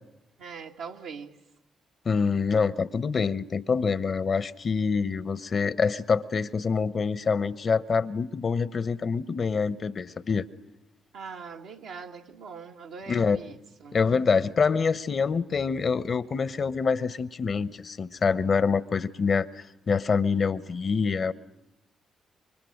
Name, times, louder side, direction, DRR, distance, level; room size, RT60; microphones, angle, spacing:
voice 1, 0.4-1.4 11.1-14.0, right 5 dB, 75° right, 1.5 m, -42 dB
voice 2, 2.0-10.4 13.1-13.4 13.9-21.3, left 5 dB, 50° left, 0.9 m, -26 dB
29.0 x 24.5 x 6.5 m
hypercardioid pair, 45°, 0 cm